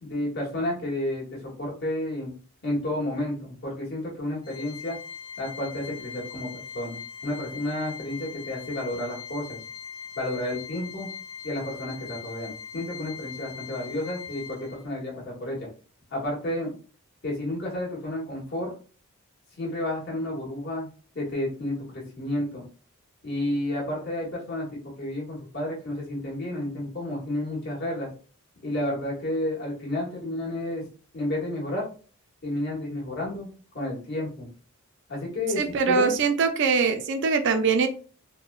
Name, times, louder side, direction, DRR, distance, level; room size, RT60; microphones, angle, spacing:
voice 1, 0.0-2.3 2.6-5.0 5.4-6.5 6.7-9.6 10.1-11.1 11.4-15.7 16.1-16.7 17.2-18.7 19.6-20.9 21.1-22.6 23.2-28.1 28.6-30.9 31.1-31.8 32.4-33.5 33.7-34.5 35.1-36.1, left 1 dB, 50° left, -4 dB, 1.4 m, -31 dB
Organ, 4.4-15.0, left 6 dB, 15° left, 0.5 m, -41 dB
voice 2, 35.6-37.9, right 5 dB, 55° right, 8 dB, 0.4 m, -22 dB
4.1 x 2.2 x 2.3 m, 0.39 s
head